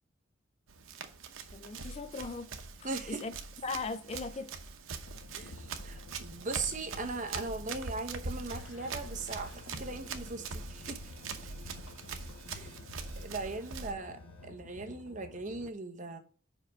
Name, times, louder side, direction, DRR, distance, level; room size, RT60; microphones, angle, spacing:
Run, 0.7-13.9, right 4 dB, 80° right, 0.9 m, -43 dB
voice 1, 1.5-2.5 3.1-3.3 3.6-4.5, left 3 dB, 30° left, 0.4 m, -38 dB
voice 2, 2.8-3.3 5.3-9.5 9.8-11.0 11.4-11.6 12.5-12.7 13.2-16.2, right 3 dB, 40° right, 0.9 m, -39 dB
sound 1, 5.1-15.7, left 2 dB, 75° left, 0.6 m, -51 dB
sound 2, 9.2-14.5, left 1 dB, 10° left, 2.1 m, -60 dB
5.5 x 5.0 x 6.2 m
head